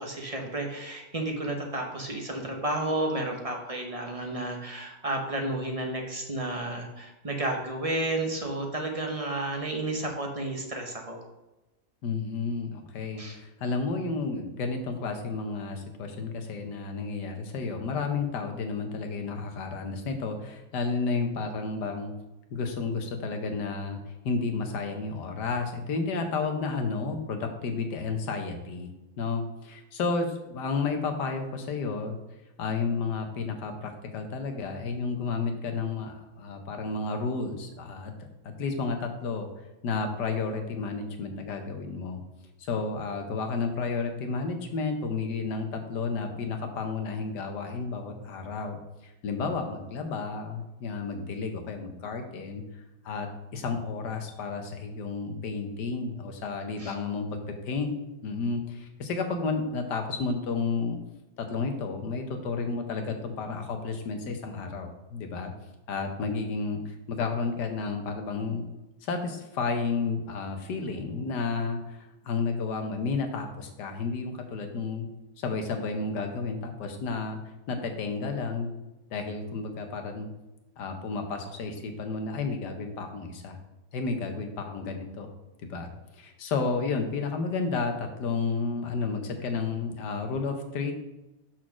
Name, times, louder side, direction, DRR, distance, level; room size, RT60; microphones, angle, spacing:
voice 1, 0.0-11.2 13.2-13.4 56.8-56.9, right 1 dB, 30° right, 2 dB, 0.8 m, -32 dB
voice 2, 12.0-22.1 22.5-24.0 24.2-28.9 29.2-32.2 32.6-38.1 38.4-39.5 39.8-42.2 42.6-52.6 53.0-57.9 58.2-61.0 61.4-65.5 65.9-68.6 69.0-75.1 75.4-77.4 77.7-78.7 79.1-80.3 80.8-83.6 83.9-85.3 85.6-90.9, left 4 dB, 85° left, 5 dB, 1.6 m, -31 dB
6.2 x 4.3 x 6.0 m, 0.99 s
omnidirectional pair, 1.8 m